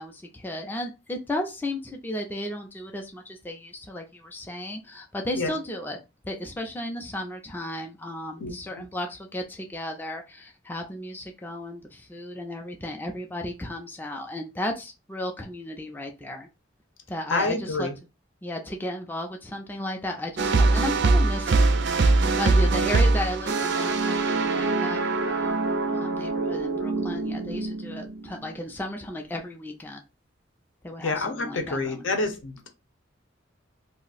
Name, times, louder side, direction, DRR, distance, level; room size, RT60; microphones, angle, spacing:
voice 1, 0.0-16.5 17.1-17.9 18.4-21.7 22.4-25.6 25.9-30.0 30.8-32.2, left 1 dB, 10° left, 0.4 m, -34 dB
voice 2, 8.4-8.8 17.3-17.9 22.6-22.9 31.0-32.7, left 3 dB, 70° left, 0.7 m, -28 dB
sound 1, 20.4-28.5, right 3 dB, 60° right, 0.4 m, -23 dB
2.5 x 2.0 x 3.9 m
head